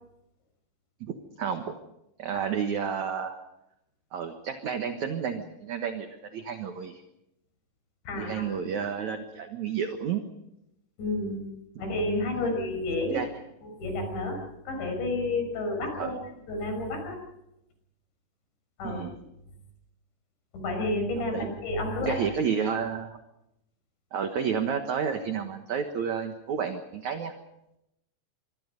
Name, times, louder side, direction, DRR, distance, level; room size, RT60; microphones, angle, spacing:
voice 1, 1.0-1.7 2.2-3.4 4.1-7.0 8.1-10.2 12.3-12.5 13.1-13.3 16.0-16.2 18.8-19.1 21.3-21.5 22.0-23.2 24.1-27.3, right 7 dB, 60° right, 6 dB, 2.1 m, -31 dB
voice 2, 8.1-8.4 11.0-11.4 11.8-13.2 13.8-14.4 14.7-16.2 16.5-17.2 18.8-19.0 20.5-22.2, left 2 dB, 80° left, 4 dB, 8.1 m, -30 dB
25.5 x 24.5 x 5.3 m, 0.84 s
omnidirectional pair, 5.0 m